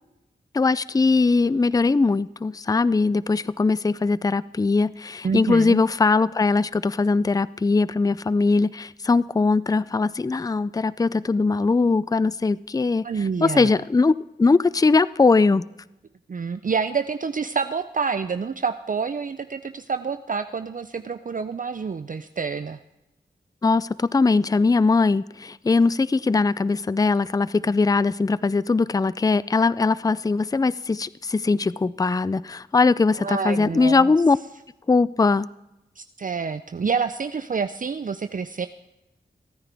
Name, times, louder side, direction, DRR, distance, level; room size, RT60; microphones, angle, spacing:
voice 1, 0.5-13.1 13.4-14.1 14.4-15.6 23.6-34.4 34.9-35.5, left 3 dB, 20° left, 19 dB, 0.4 m, -20 dB
voice 2, 5.2-5.8 13.0-13.7 16.3-22.8 33.2-34.1 36.0-38.7, right 5 dB, 45° right, 10 dB, 0.5 m, -28 dB
23.5 x 9.7 x 3.5 m, 0.93 s
cardioid pair, 40°, 18 cm